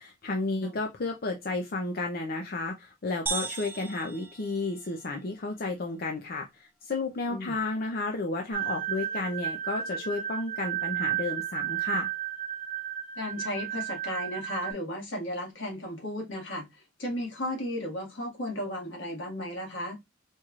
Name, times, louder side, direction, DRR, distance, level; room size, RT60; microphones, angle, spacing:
voice 1, 0.0-12.1, left 3 dB, 50° left, 0.6 m, -32 dB
sound 1, 3.3-5.2, right 4 dB, 10° right, 0.3 m, -36 dB
sound 2, 8.5-14.7, right 11 dB, 40° right, 0.8 m, -33 dB
voice 2, 13.2-16.7 17.0-20.0, left 1 dB, 70° left, 1.7 m, -34 dB
4.5 x 3.0 x 2.4 m
head